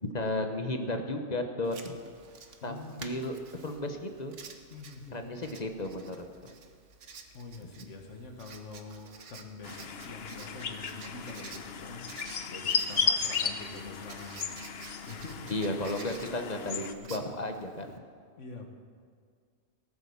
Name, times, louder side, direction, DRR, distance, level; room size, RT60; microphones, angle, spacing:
voice 1, 0.0-1.9 2.6-3.4 3.6-4.3 5.1-6.5 7.8-7.9 15.5-18.0, left 1 dB, 35° left, 5 dB, 1.2 m, -34 dB
Writing, 1.6-18.0, right 5 dB, 85° right, 1.4 m, -51 dB
voice 2, 2.6-3.1 4.7-5.4 7.3-14.5 15.0-15.6 18.4-18.7, left 3 dB, 90° left, 3 dB, 1.9 m, -45 dB
sound 1, 9.6-16.9, left 6 dB, 60° left, 1.0 m, -34 dB
18.0 x 8.7 x 7.1 m, 2.1 s
omnidirectional pair, 1.2 m